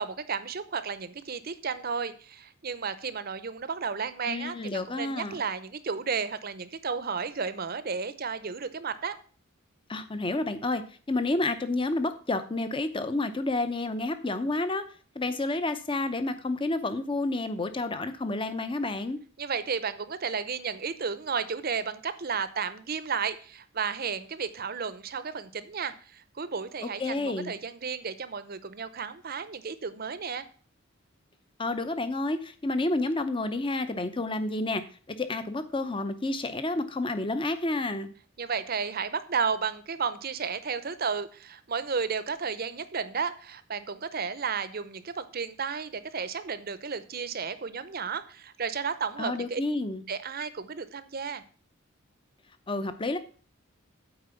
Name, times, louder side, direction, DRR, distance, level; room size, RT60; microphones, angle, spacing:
voice 1, 0.0-9.1 19.4-30.4 38.4-49.6 50.1-51.4, right 5 dB, 45° right, 13 dB, 0.7 m, -33 dB
voice 2, 4.3-5.4 9.9-10.8 11.1-14.8 15.1-19.2 26.8-27.5 31.6-34.8 35.1-38.1 49.2-50.0 52.7-53.2, left 2 dB, 25° left, 11 dB, 0.7 m, -30 dB
8.8 x 4.6 x 7.0 m, 0.41 s
head